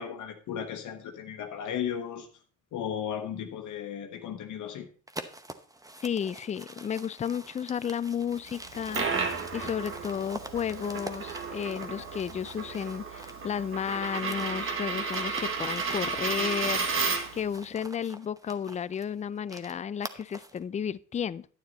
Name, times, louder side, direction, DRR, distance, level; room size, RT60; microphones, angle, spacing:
voice 1, 0.0-2.3 2.7-4.9 12.0-12.1, left 8 dB, 75° left, 1.1 m, -35 dB
sound 1, 5.1-13.5 13.8-20.6, right 2 dB, 10° right, 0.9 m, -46 dB
voice 2, 6.0-9.1 9.5-17.0 17.3-21.5, left 8 dB, 25° left, 0.3 m, -33 dB
Coin (dropping), 8.6-17.5, right 4 dB, 45° right, 1.5 m, -33 dB
9.4 x 9.1 x 4.0 m
cardioid pair, 90°, 30 cm